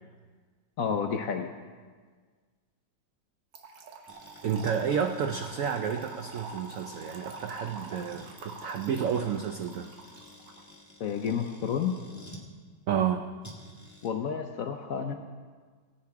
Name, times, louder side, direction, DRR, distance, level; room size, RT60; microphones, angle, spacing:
voice 1, 0.8-1.5 11.0-11.9 14.0-15.1, left 7 dB, 65° left, 5 dB, 0.8 m, -30 dB
Trickle dribble / Fill (with liquid), 3.5-10.6, right 4 dB, 70° right, 1.7 m, -45 dB
sound 1, 4.1-12.5 13.4-14.1, left 1 dB, 10° left, 1.3 m, -51 dB
voice 2, 4.4-9.9 12.9-13.3, right 7 dB, 90° right, 6 dB, 0.7 m, -30 dB
19.0 x 8.8 x 3.5 m, 1.5 s
omnidirectional pair, 2.1 m